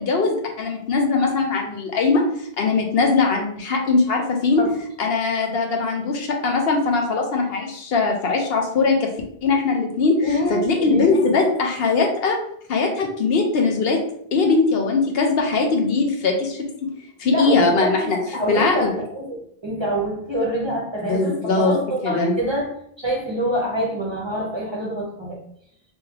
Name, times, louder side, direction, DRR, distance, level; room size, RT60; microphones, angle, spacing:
voice 1, 0.0-2.2 2.6-4.6 5.0-9.1 9.4-12.4 12.7-14.0 14.3-16.7 17.2-18.2 18.5-18.9 21.1-21.7 22.0-22.3, left 4 dB, 75° left, 2 dB, 0.9 m, -20 dB
voice 2, 10.2-11.2 17.2-22.7 23.0-25.4, equal, 30° right, -3 dB, 0.7 m, -26 dB
3.3 x 2.6 x 3.4 m, 0.67 s
omnidirectional pair, 1.0 m